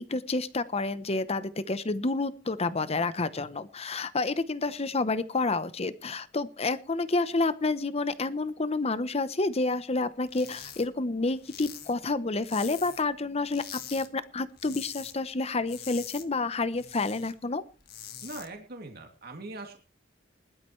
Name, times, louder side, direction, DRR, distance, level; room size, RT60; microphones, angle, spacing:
voice 1, 0.0-17.6, left 3 dB, 35° left, 14 dB, 0.8 m, -29 dB
sound 1, 10.3-10.9 11.1-13.1 13.5-14.1 14.4-15.2 15.5-17.3 17.7-18.5, left 10 dB, 55° left, 1.6 m, -44 dB
voice 2, 18.2-19.8, right 2 dB, 55° right, 3 dB, 2.6 m, -41 dB
20.0 x 12.0 x 3.2 m, 0.36 s
head